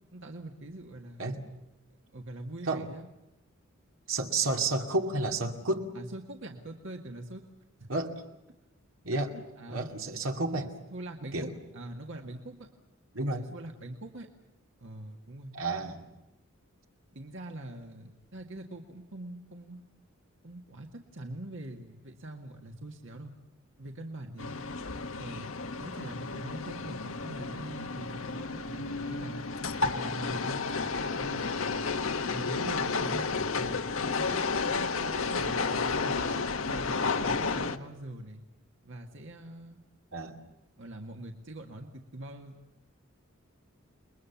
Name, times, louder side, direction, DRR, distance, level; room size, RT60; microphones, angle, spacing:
voice 1, 0.1-1.3 2.1-3.1 5.9-7.4 9.3-9.9 10.3-12.7 13.3-14.3 14.8-15.5 17.1-19.8 20.4-23.3 23.8-24.6 25.1-25.5 25.8-29.4 29.8-30.6 31.1-31.9 32.3-33.8 34.1-36.3 36.7-38.4 38.8-39.8 40.7-42.6, right 1 dB, 65° right, 3 dB, 1.9 m, -43 dB
voice 2, 4.1-5.9 7.9-8.1 9.0-9.3 9.7-10.7 11.3-11.5 13.1-13.5 15.5-16.1 40.1-40.4, right 2 dB, 80° right, 4 dB, 2.5 m, -31 dB
sound 1, 24.4-37.8, left 4 dB, 75° left, 1.3 m, -32 dB
29.5 x 22.0 x 7.2 m, 0.98 s
head